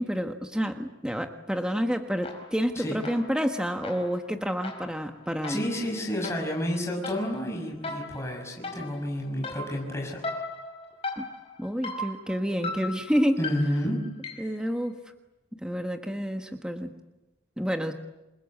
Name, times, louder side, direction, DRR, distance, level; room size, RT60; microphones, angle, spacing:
voice 1, 0.0-5.7 11.2-11.3 11.6-13.4 14.4-15.0 15.6-16.9 17.6-17.9, equal, 5° right, 5 dB, 1.4 m, -29 dB
sound 1, 2.2-2.7 3.0-14.6, left 2 dB, 30° left, 4.9 m, -39 dB
voice 2, 5.5-10.2 13.4-14.0, equal, 15° left, 0 dB, 5.9 m, -30 dB
28.5 x 22.0 x 8.6 m, 0.99 s
head